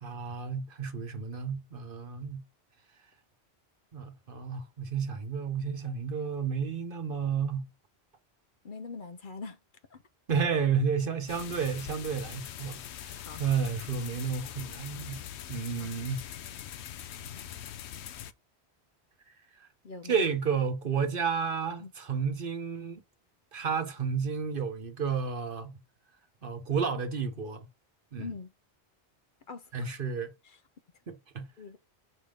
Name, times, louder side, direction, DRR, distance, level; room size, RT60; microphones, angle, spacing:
voice 1, 0.0-2.4 3.9-7.7 10.3-15.2 15.5-16.2 19.6-19.7 20.0-23.0 23.5-25.8 26.4-27.7 28.1-28.3 29.7-30.3 31.1-31.5, right 6 dB, 55° right, 1.1 m, -31 dB
voice 2, 8.6-9.6 9.9-10.0 13.2-13.4 15.8-15.9 19.8-20.2 21.8-21.9 28.2-28.5 29.5-29.9 30.4-30.6 31.6-31.8, left 4 dB, 55° left, 0.8 m, -42 dB
sound 1, 11.3-18.3, left 10 dB, 85° left, 0.9 m, -42 dB
6.4 x 3.6 x 5.2 m
omnidirectional pair, 1.1 m